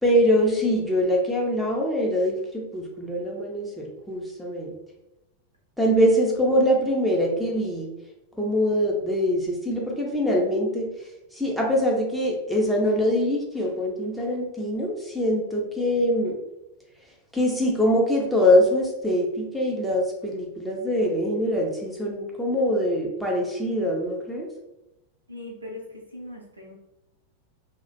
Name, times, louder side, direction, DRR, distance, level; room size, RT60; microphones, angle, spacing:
voice 1, 0.0-4.8 5.8-7.9 8.4-10.9 11.3-16.4 17.3-24.5, equal, ahead, -2 dB, 0.5 m, -23 dB
voice 2, 25.3-26.7, left 1 dB, 80° right, -1 dB, 0.5 m, -40 dB
2.3 x 2.1 x 2.6 m, 0.93 s
figure-of-eight pair, 90°, 0 cm